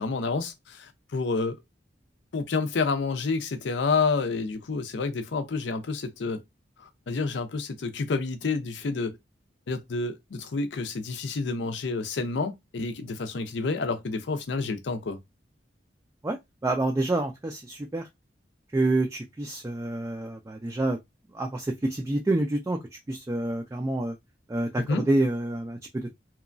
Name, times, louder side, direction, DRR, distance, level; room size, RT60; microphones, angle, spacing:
voice 1, 0.0-1.6 2.3-6.4 6.8-9.2 9.7-15.2 24.8-25.1, left 4 dB, 80° left, 0.5 m, -29 dB
voice 2, 16.2-18.1 18.7-21.0 21.3-22.8 23.1-24.2 24.5-26.1, right 2 dB, 15° right, 0.3 m, -28 dB
2.9 x 2.2 x 2.5 m
head